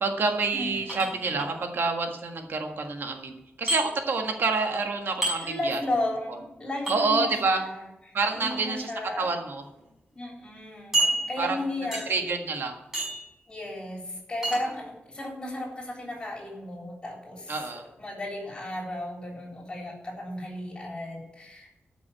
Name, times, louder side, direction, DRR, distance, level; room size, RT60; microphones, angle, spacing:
voice 1, 0.0-5.8 6.9-7.6 8.1-8.9 9.2-9.6 11.4-11.6 12.1-12.8 17.5-17.8, right 3 dB, 70° right, 4 dB, 1.6 m, -27 dB
voice 2, 0.5-1.2 5.3-9.4 10.1-12.3 13.5-21.7, left 1 dB, 25° left, -1 dB, 3.8 m, -34 dB
sound 1, 0.9-1.5 3.7-3.8 5.2-5.4 6.9-7.0 8.3-8.6 9.3-9.4 9.8-9.9 10.9-11.6 11.9-12.3 12.9-13.3 14.4-14.6, right 2 dB, 10° right, 5.5 m, -28 dB
13.5 x 6.1 x 8.7 m, 0.90 s
wide cardioid pair, 170°, 4 cm